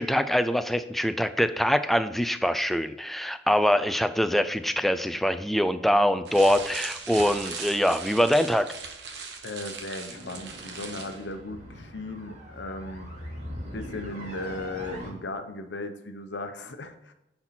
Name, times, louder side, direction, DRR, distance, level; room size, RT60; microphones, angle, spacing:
voice 1, 0.0-8.7, equal, ahead, 11 dB, 0.4 m, -24 dB
sound 1, 6.3-11.3, right 5 dB, 70° right, 1.1 m, -39 dB
voice 2, 9.1-13.1 13.7-17.1, left 2 dB, 80° left, 8 dB, 0.8 m, -37 dB
sound 2, 10.1-15.1, equal, 40° right, 2.5 m, -41 dB
9.8 x 4.4 x 4.2 m, 0.92 s
head